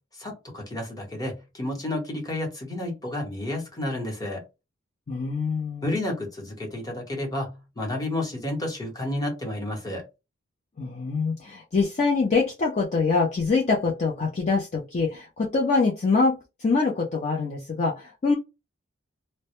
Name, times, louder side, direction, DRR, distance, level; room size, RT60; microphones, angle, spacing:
voice 1, 0.2-4.4 5.8-10.0, left 1 dB, 20° left, 0.9 m, -31 dB
voice 2, 5.1-5.9 10.8-18.4, left 4 dB, 35° left, 0.4 m, -24 dB
2.1 x 2.0 x 2.8 m
head